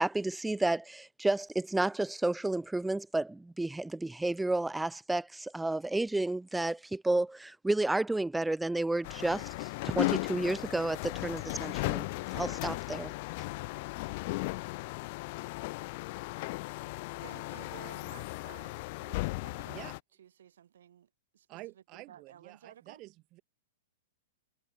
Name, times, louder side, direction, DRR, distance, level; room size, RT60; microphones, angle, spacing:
voice 1, 0.0-12.0 12.3-13.1, right 2 dB, 5° right, 0.5 m, -31 dB
sound 1, 9.0-20.0, left 24 dB, 50° left, 0.4 m, -36 dB
voice 2, 16.8-21.5 21.7-23.0, right 10 dB, 70° right, 5.5 m, -55 dB
voice 3, 19.6-19.9 21.5-23.4, right 19 dB, 40° right, 7.6 m, -49 dB
hypercardioid pair, 115°, 0 cm